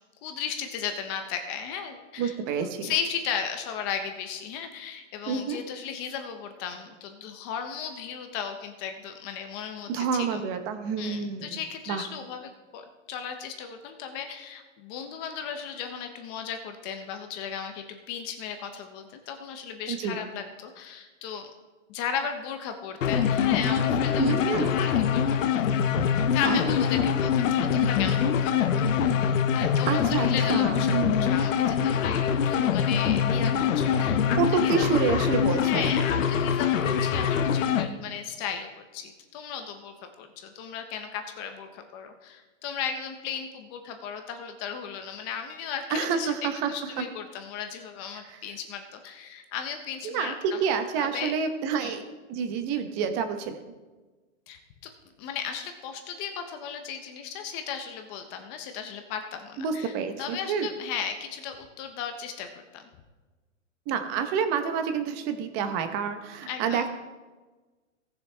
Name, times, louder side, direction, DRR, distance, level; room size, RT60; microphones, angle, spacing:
voice 1, 0.2-10.4 11.0-21.5 21.9-25.6 26.3-30.9 31.2-34.9 35.7-46.3 46.7-50.6 51.0-51.3 51.7-52.0 54.5-54.9 55.2-62.9 66.5-66.8, left 7 dB, 20° left, 6 dB, 0.5 m, -36 dB
voice 2, 2.2-2.9 5.3-5.6 9.9-11.5 11.9-12.0 19.9-20.2 24.2-24.7 26.4-26.7 29.9-31.4 34.3-35.9 45.9-46.7 47.0-47.1 48.3-48.4 50.0-52.0 52.3-53.6 59.6-60.7 63.9-66.9, right 6 dB, 25° right, 8 dB, 0.9 m, -28 dB
sound 1, 23.0-37.9, left 7 dB, 75° left, 0.9 m, -24 dB
17.5 x 6.8 x 3.4 m, 1.3 s
hypercardioid pair, 150°, 39 cm